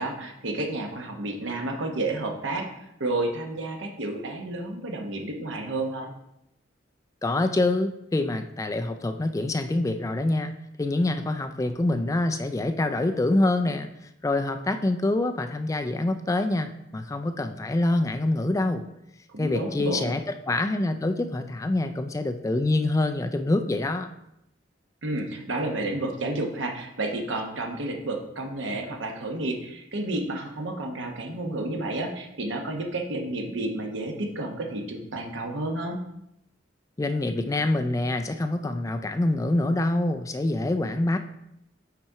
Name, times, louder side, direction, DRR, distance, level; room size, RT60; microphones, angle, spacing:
voice 1, 0.0-2.7 3.0-6.1 19.3-20.2 25.0-36.0, right 2 dB, 80° right, 3 dB, 1.0 m, -31 dB
voice 2, 7.2-10.5 10.8-13.9 14.2-18.8 19.4-20.2 20.5-24.1 37.0-41.2, left 2 dB, 15° left, 7 dB, 0.3 m, -25 dB
5.8 x 4.2 x 4.7 m, 0.82 s
head